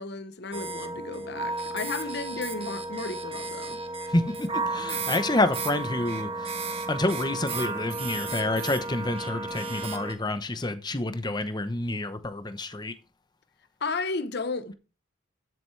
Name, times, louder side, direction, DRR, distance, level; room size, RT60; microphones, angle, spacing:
voice 1, 0.0-3.8 13.8-14.7, left 3 dB, 50° left, 0.9 m, -33 dB
sound 1, 0.5-10.1, right 3 dB, 25° right, 1.4 m, -33 dB
voice 2, 4.1-12.9, left 2 dB, 20° left, 0.8 m, -28 dB
13.0 x 7.8 x 3.3 m
head